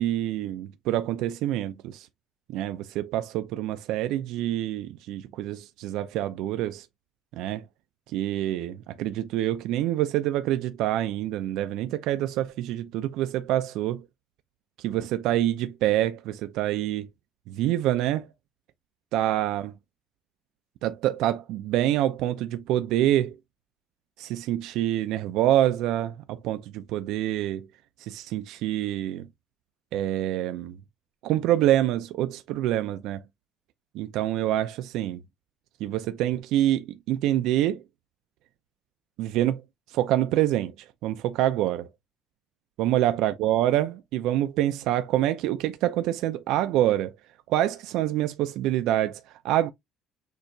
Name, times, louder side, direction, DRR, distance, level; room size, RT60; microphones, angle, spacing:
voice 1, 0.0-2.1 2.5-6.9 7.3-7.7 8.1-14.0 14.8-17.1 17.5-18.3 19.1-19.6 20.8-23.4 24.2-27.7 28.0-29.3 29.9-30.8 31.2-33.2 33.9-35.2 35.8-37.8 39.2-39.6 39.9-41.9 42.8-47.2 47.5-49.7, right 13 dB, 75° right, 0.4 m, -26 dB
6.4 x 2.9 x 2.6 m
cardioid pair, 130°, 0 cm